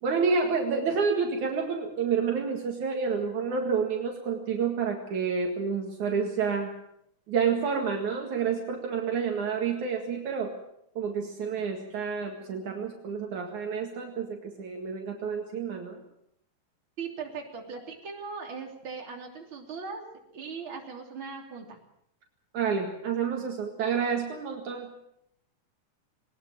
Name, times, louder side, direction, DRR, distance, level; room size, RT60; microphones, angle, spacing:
voice 1, 0.0-6.7 7.3-10.5 11.0-16.0 22.5-24.9, right 5 dB, 65° right, 2 dB, 3.3 m, -29 dB
voice 2, 17.0-20.0 20.3-21.8, right 5 dB, 40° right, 1 dB, 3.9 m, -39 dB
20.5 x 20.0 x 7.4 m, 0.74 s
omnidirectional pair, 3.7 m